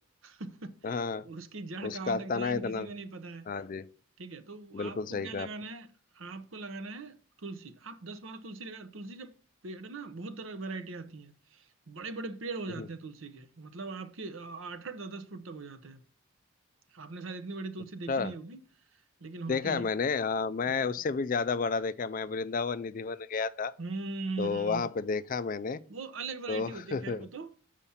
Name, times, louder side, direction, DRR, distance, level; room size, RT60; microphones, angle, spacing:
voice 1, 0.2-3.5 4.2-5.9 6.1-9.3 9.6-16.0 16.9-18.6 19.2-19.9 20.7-20.9 23.8-24.9 25.9-27.5, right 3 dB, 70° right, 0.8 m, -41 dB
voice 2, 0.8-1.3 1.8-2.9 3.5-3.9 4.7-5.5 12.8-12.9 18.1-18.3 19.5-23.7 24.4-25.8 26.5-27.3, left 4 dB, 40° left, 0.3 m, -31 dB
7.0 x 4.9 x 5.6 m
head